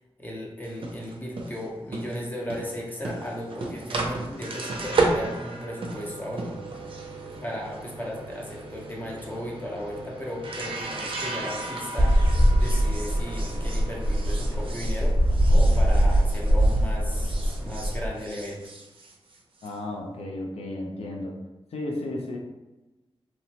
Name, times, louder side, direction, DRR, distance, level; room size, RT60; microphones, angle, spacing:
voice 1, 0.2-6.9 7.4-12.3 12.6-15.2 15.5-18.7, equal, 15° left, -3 dB, 0.7 m, -36 dB
sound 1, 0.6-16.8 17.1-19.7, right 2 dB, 55° right, 0.5 m, -34 dB
sound 2, 12.0-18.1, equal, 30° right, 0.7 m, -22 dB
voice 2, 19.6-21.3 21.7-22.4, left 1 dB, 80° left, 0 dB, 0.5 m, -33 dB
2.9 x 2.0 x 2.8 m, 1.1 s
wide cardioid pair, 85°, 10 cm